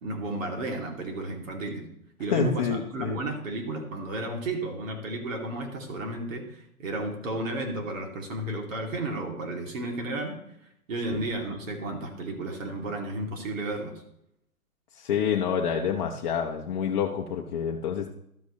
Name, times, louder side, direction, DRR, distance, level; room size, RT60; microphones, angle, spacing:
voice 1, 0.0-1.8 2.2-10.4 10.9-13.9, right 2 dB, 60° right, 2 dB, 2.8 m, -33 dB
voice 2, 2.3-3.2 11.1-11.2 15.0-18.1, left 7 dB, 30° left, 0 dB, 0.8 m, -28 dB
12.5 x 8.0 x 3.1 m, 0.76 s
hypercardioid pair, 135°, 45 cm